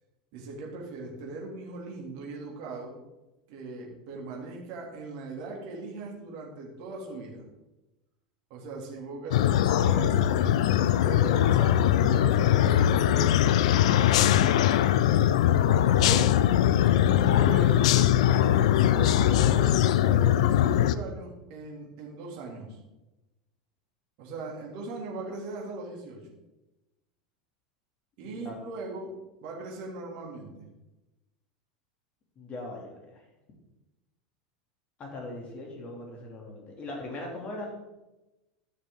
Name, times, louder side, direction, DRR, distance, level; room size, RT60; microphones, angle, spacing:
voice 1, 0.3-3.0 3.5-7.4 8.5-13.5 16.0-16.3 17.1-17.8 18.2-19.8 20.0-22.8 24.2-26.2 28.2-29.1 29.4-30.7, right 3 dB, 55° right, -1 dB, 3.0 m, -39 dB
sound 1, 9.3-21.0, left 11 dB, 65° left, 0.5 m, -21 dB
voice 2, 28.2-28.6 32.4-33.2 35.0-37.7, left 2 dB, 35° left, 0 dB, 2.8 m, -40 dB
13.5 x 6.6 x 3.8 m, 1.0 s
figure-of-eight pair, 85°, 4 cm